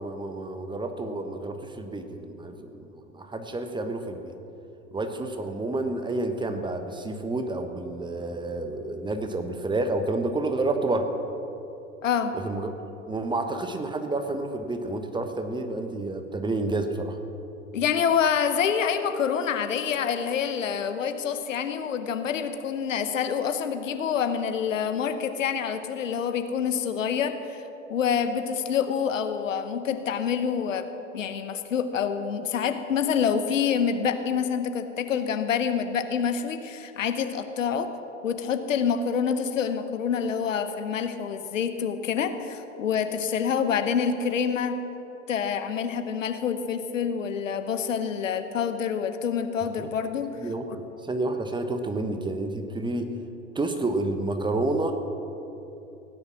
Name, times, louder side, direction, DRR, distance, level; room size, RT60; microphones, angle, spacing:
voice 1, 0.0-4.3 4.9-11.1 12.3-12.7 13.1-17.2 49.8-49.9 50.4-53.1 53.5-54.9, right 2 dB, 10° right, 7 dB, 1.1 m, -29 dB
voice 2, 12.0-12.3 17.7-27.6 27.9-30.9 31.1-37.9 38.2-44.8 45.3-50.4, left 7 dB, 70° left, 9 dB, 1.1 m, -27 dB
17.0 x 9.9 x 6.1 m, 2.9 s
figure-of-eight pair, 90°, 39 cm